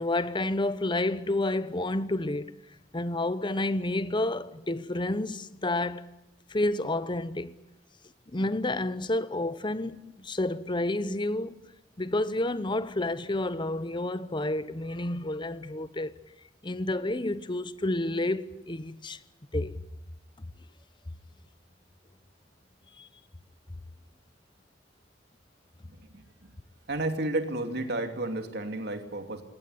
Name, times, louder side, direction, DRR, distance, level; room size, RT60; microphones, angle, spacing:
voice 1, 0.0-2.5 2.9-6.1 6.5-7.5 8.3-11.6 12.0-16.1 16.6-19.2 19.5-19.8 23.0-23.1, left 2 dB, 25° left, 0.9 m, -30 dB
voice 2, 26.9-29.4, right 2 dB, 60° right, 2.7 m, -31 dB
21.0 x 17.5 x 9.7 m
head